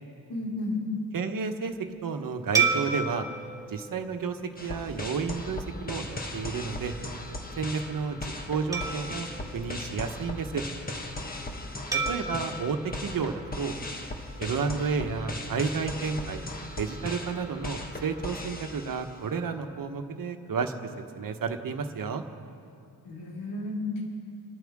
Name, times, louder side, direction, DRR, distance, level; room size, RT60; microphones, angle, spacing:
voice 1, 0.3-0.8 23.0-24.0, left 2 dB, 85° left, -5 dB, 4.8 m, -32 dB
voice 2, 1.1-1.7 2.0-3.2 3.7-6.9 7.6-9.3 9.5-10.6 12.1-13.7 14.4-16.4 16.8-20.7 21.2-22.2, right 5 dB, 55° right, 6 dB, 1.3 m, -31 dB
sound 1, 2.5-5.2 5.8-6.0 8.7-10.5 11.9-14.2, right 5 dB, 10° right, 2.7 m, -32 dB
sound 2, 4.6-19.3, left 1 dB, 20° left, 1.5 m, -38 dB
29.5 x 13.5 x 3.7 m, 2.4 s
wide cardioid pair, 155°, 41 cm